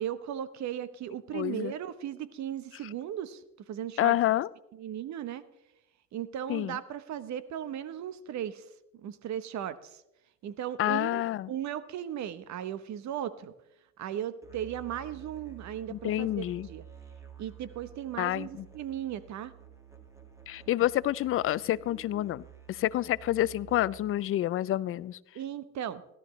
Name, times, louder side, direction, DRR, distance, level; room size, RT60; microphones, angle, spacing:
voice 1, 0.0-3.4 3.7-4.2 4.7-5.4 6.1-8.6 9.0-10.0 10.4-11.2 11.5-13.5 14.0-16.8 17.4-19.5 25.3-26.0, right 10 dB, 55° right, 15 dB, 0.9 m, -36 dB
voice 2, 1.3-1.7 4.0-4.5 6.5-6.8 10.8-11.5 15.9-16.7 18.2-18.7 20.5-25.2, left 14 dB, 40° left, 20 dB, 0.4 m, -28 dB
Musical instrument, 14.4-24.2, right 8 dB, 10° right, 2.1 m, -51 dB
17.0 x 12.5 x 3.1 m, 0.88 s
supercardioid pair, 95°, 34 cm